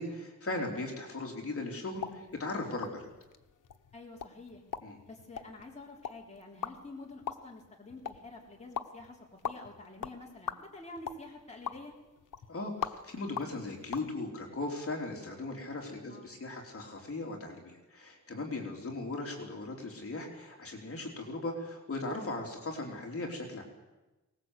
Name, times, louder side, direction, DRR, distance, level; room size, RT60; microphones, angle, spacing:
voice 1, 0.0-3.1 4.8-5.0 12.5-23.6, left 2 dB, 45° left, 0 dB, 3.8 m, -38 dB
sound 1, 1.9-14.1, left 7 dB, 85° left, 1.1 m, -43 dB
voice 2, 3.9-4.6 5.1-11.9 16.1-16.3, left 2 dB, 20° left, -2 dB, 3.7 m, -48 dB
23.5 x 19.5 x 8.3 m, 1.1 s
wide cardioid pair, 165°, 30 cm